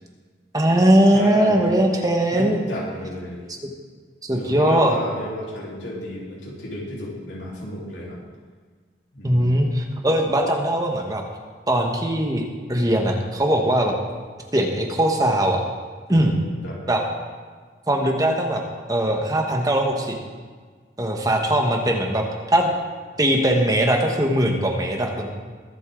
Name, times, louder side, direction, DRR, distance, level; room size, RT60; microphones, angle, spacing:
voice 1, 0.5-2.6 4.2-5.0 9.2-11.2 11.7-14.0 14.5-15.6 16.1-16.3 16.9-17.0 17.9-18.6 18.9-20.2 21.0-22.7 23.2-25.3, right 1 dB, 20° right, 2 dB, 1.3 m, -20 dB
voice 2, 1.1-1.7 2.3-3.4 4.4-8.2 9.1-9.6 16.1-16.4 16.6-16.8, equal, 85° left, -5 dB, 3.7 m, -32 dB
22.0 x 8.1 x 3.8 m, 1.5 s
head